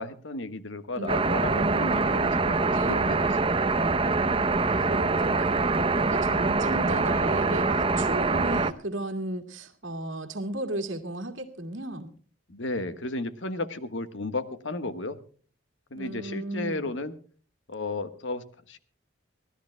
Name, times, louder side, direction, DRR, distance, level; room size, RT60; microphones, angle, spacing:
voice 1, 0.0-3.5 6.2-6.5 12.5-15.2 15.9-17.2 17.7-18.8, left 2 dB, 70° left, 11 dB, 1.5 m, -34 dB
voice 2, 1.0-2.1 2.7-3.0 4.7-12.1 15.9-16.9, right 1 dB, 80° right, 7 dB, 2.3 m, -35 dB
sound 1, 1.1-8.7, right 3 dB, 25° right, 0.7 m, -24 dB
25.0 x 16.5 x 2.2 m, 0.42 s
head